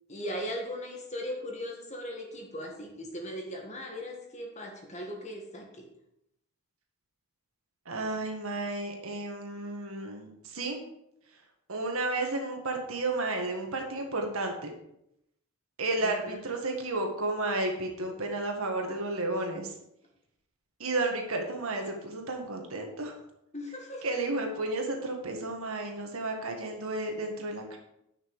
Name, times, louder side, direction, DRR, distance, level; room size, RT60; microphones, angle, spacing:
voice 1, 0.1-5.9 16.0-16.4 23.5-24.1, equal, 30° left, 2 dB, 1.7 m, -38 dB
voice 2, 7.9-10.8 11.7-14.7 15.8-19.7 20.8-23.2 24.0-27.8, right 2 dB, 75° right, 2 dB, 1.8 m, -32 dB
10.0 x 6.1 x 4.8 m, 0.80 s
head